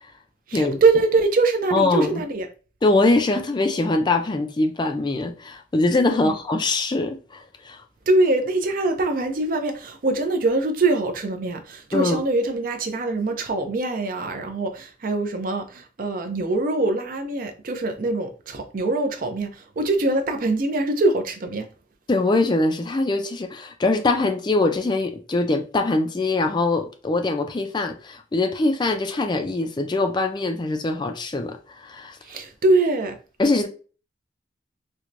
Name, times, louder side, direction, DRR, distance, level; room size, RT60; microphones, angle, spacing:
voice 1, 0.5-2.5 6.1-6.4 8.1-21.7 32.2-33.2, right 2 dB, 45° right, 0.5 m, -23 dB
voice 2, 1.7-2.2 2.8-7.8 11.9-12.2 22.1-32.2 33.4-33.7, left 2 dB, 25° left, 0.3 m, -23 dB
4.5 x 2.1 x 2.5 m
head